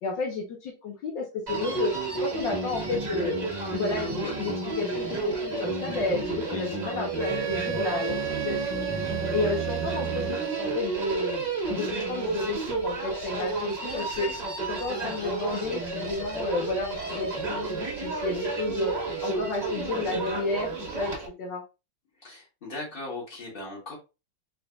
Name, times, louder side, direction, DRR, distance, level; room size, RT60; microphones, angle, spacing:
voice 1, 0.0-1.9 2.2-8.2 8.4-9.0 9.3-14.3 14.6-18.9 19.2-21.1 21.4-21.6, left 3 dB, 80° left, 0 dB, 1.7 m, -32 dB
Human voice, 1.5-21.3, right 3 dB, 25° right, 1.2 m, -31 dB
Wind instrument woodwind instrument, 7.2-10.9, right 12 dB, 70° right, 1.1 m, -33 dB
voice 2, 22.2-24.0, left 2 dB, 30° left, -4 dB, 2.2 m, -38 dB
4.1 x 3.8 x 2.3 m, 0.28 s
omnidirectional pair, 2.0 m